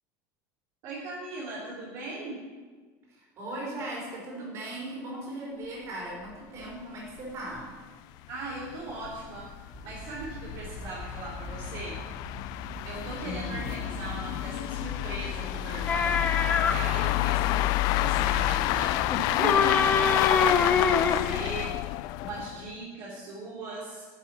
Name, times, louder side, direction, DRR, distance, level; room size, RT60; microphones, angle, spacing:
voice 1, 0.8-2.4 8.3-9.5 9.8-12.0 12.8-16.3 16.6-19.0 19.2-21.7 22.2-24.1, right 2 dB, 50° right, -6 dB, 3.3 m, -39 dB
voice 2, 3.1-7.7 13.2-13.6, right 1 dB, 35° right, -2 dB, 4.2 m, -38 dB
sound 1, 6.3-6.4 6.6-6.7 7.2-7.3 7.6-7.7 8.3-22.7, left 17 dB, 50° left, 0.3 m, -29 dB
sound 2, 9.7-19.1, right 1 dB, 20° right, 1.8 m, -42 dB
sound 3, 15.9-16.8 19.1-21.2, left 5 dB, 20° left, 0.8 m, -24 dB
11.5 x 10.5 x 6.1 m, 1.4 s
cardioid pair, 170°, 9 cm